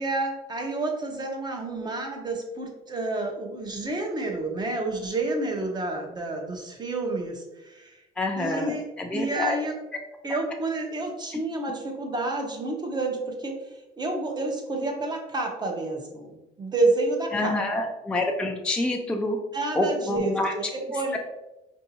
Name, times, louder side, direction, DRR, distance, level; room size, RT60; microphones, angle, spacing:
voice 1, 0.0-8.0 8.4-8.9 9.1-9.7 10.2-13.5 14.0-17.8 19.5-21.2, right 2 dB, 25° right, 2 dB, 0.8 m, -29 dB
voice 2, 8.2-9.6 17.3-19.4 19.7-20.5, left 2 dB, 5° left, 2 dB, 0.4 m, -27 dB
4.4 x 2.6 x 2.8 m, 0.99 s
cardioid pair, 110°, 17 cm